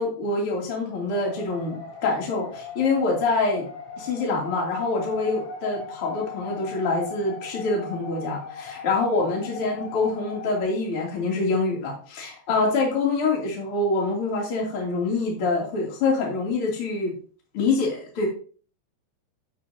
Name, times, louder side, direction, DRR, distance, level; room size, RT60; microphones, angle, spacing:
voice 1, 0.0-3.7 4.0-17.1 17.5-18.3, left 3 dB, 35° left, -1 dB, 2.5 m, -25 dB
sound 1, 1.1-10.6, left 4 dB, 90° left, 4.5 m, -39 dB
10.5 x 7.4 x 2.7 m, 0.42 s
omnidirectional pair, 5.7 m